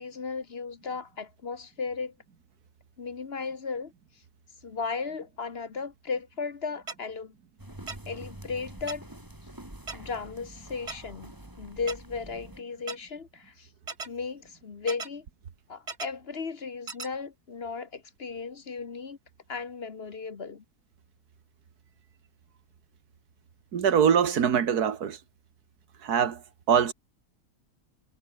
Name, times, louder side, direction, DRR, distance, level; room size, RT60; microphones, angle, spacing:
voice 1, 0.0-2.1 3.0-3.9 4.6-7.3 8.1-9.1 9.9-11.3 11.6-13.7 14.1-15.2 15.7-19.2 19.5-20.6, left 5 dB, 40° left, 1.3 m, -35 dB
sound 1, 6.9-7.0 7.9-8.0 8.9-9.0 9.9-10.0 10.9-11.0 11.9-12.0 12.9-13.0 13.9-14.1 14.9-15.1 15.9-16.1 16.9-17.1, right 4 dB, 45° right, 2.5 m, -36 dB
sound 2, 7.6-12.6, right 1 dB, 10° right, 3.4 m, -46 dB
voice 2, 23.7-25.2 26.0-26.4 26.7-26.9, right 7 dB, 75° right, 2.0 m, -23 dB
omnidirectional pair, 1.6 m